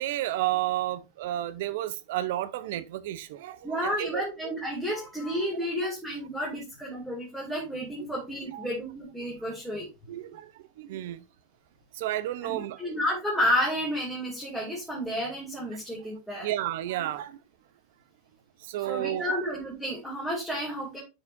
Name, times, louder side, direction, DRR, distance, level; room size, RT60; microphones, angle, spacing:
voice 1, 0.0-4.2 8.5-8.7 10.1-11.2 11.9-12.8 16.4-17.4 18.6-19.4, right 14 dB, 70° right, 0.7 m, -32 dB
voice 2, 3.6-9.9 12.4-16.5 18.9-21.0, equal, ahead, 2.5 m, -31 dB
9.6 x 4.9 x 2.6 m
supercardioid pair, 130°, 0 cm